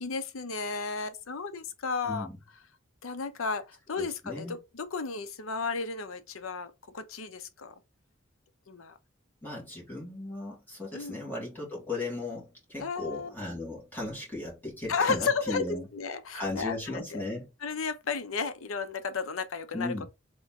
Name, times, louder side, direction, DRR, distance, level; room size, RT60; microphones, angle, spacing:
voice 1, 0.0-2.3 3.0-7.7 8.7-9.0 10.9-11.2 12.8-13.3 14.9-17.2 17.6-19.9, left 5 dB, 85° left, 0.7 m, -33 dB
voice 2, 2.0-2.4 4.0-4.5 9.4-15.9 16.3-17.5 19.7-20.1, left 2 dB, 10° left, 2.2 m, -36 dB
3.9 x 3.1 x 3.6 m
head